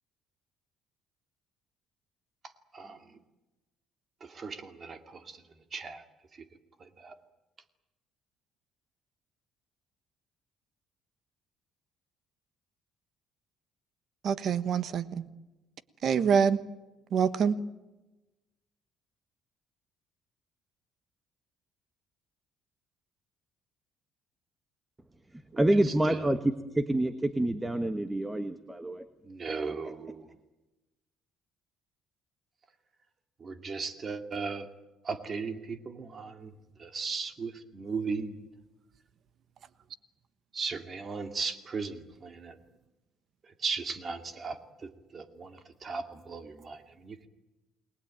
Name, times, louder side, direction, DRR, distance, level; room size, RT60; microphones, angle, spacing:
voice 1, 2.7-3.2 4.2-5.4 5.7-6.0 6.3-6.4 6.8-7.2 25.7-26.2 29.2-30.3 33.4-34.7 35.0-36.5 36.8-38.5 40.5-42.6 43.4-47.3, right 4 dB, 30° right, 2.3 m, -37 dB
voice 2, 14.2-15.2 16.0-16.6 17.1-17.6, right 7 dB, 45° right, 1.2 m, -25 dB
voice 3, 25.6-26.4 26.7-29.0, right 1 dB, 10° right, 1.3 m, -27 dB
29.5 x 20.5 x 8.9 m
cardioid pair, 135°, 0 cm